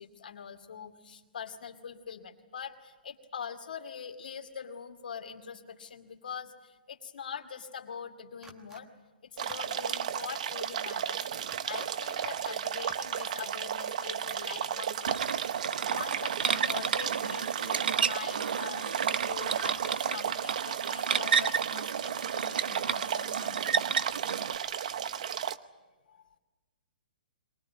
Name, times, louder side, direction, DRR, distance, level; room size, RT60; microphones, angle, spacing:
voice 1, 0.0-8.9 9.3-11.3 11.7-23.9 26.1-26.3, left 7 dB, 70° left, 5 dB, 2.4 m, -43 dB
sound 1, 8.4-8.8 9.4-9.8 11.4-11.9 12.2-12.6 12.8-13.3, right 3 dB, 10° right, 1.2 m, -52 dB
sound 2, 9.4-25.6, right 9 dB, 50° right, 0.8 m, -34 dB
sound 3, 15.1-24.6, right 6 dB, 80° right, 0.8 m, -32 dB
23.0 x 20.0 x 9.4 m, 1.2 s
hypercardioid pair, 170°, 5 cm